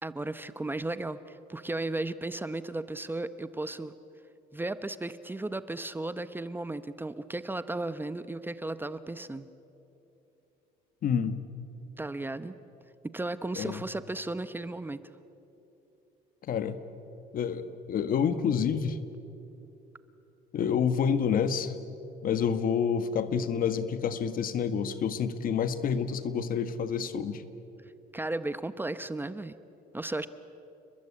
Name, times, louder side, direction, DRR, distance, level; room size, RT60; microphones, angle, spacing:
voice 1, 0.0-3.9 4.5-9.5 12.0-12.5 13.0-15.0 28.1-29.5 29.9-30.3, right 2 dB, 10° right, 13 dB, 0.8 m, -35 dB
voice 2, 11.0-11.4 13.6-13.8 16.5-16.8 17.3-19.0 20.5-21.7 22.2-27.4, left 7 dB, 55° left, 12 dB, 1.6 m, -28 dB
30.0 x 21.0 x 8.7 m, 2.9 s
cardioid pair, 110°, 17 cm